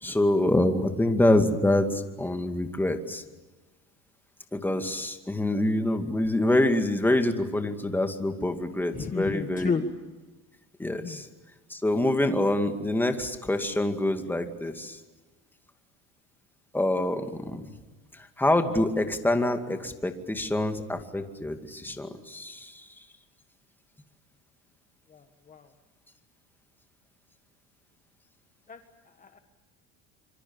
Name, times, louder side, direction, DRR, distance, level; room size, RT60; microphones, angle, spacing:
voice 1, 0.0-3.2 4.5-9.9 10.8-11.3 11.7-15.0 16.7-17.7 18.1-23.0, left 1 dB, 5° left, 6 dB, 2.3 m, -26 dB
voice 2, 8.9-9.8 10.8-11.2 25.1-25.7 28.7-28.8 29.1-29.4, left 5 dB, 25° left, 7 dB, 1.5 m, -33 dB
26.0 x 25.0 x 7.3 m, 1.2 s
supercardioid pair, 115°, 33 cm